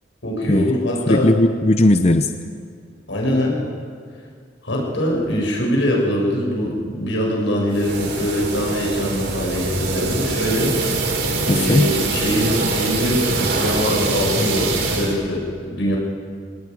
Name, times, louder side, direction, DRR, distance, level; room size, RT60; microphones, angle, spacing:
voice 1, 0.2-1.3 3.1-3.6 4.6-10.7 11.5-16.0, equal, 85° left, -2 dB, 7.1 m, -22 dB
voice 2, 1.1-2.3 11.5-11.9, left 1 dB, 35° left, 8 dB, 0.7 m, -17 dB
sound 1, 7.7-15.1, right 3 dB, 65° right, 4.8 m, -23 dB
25.0 x 19.0 x 9.6 m, 2.2 s
head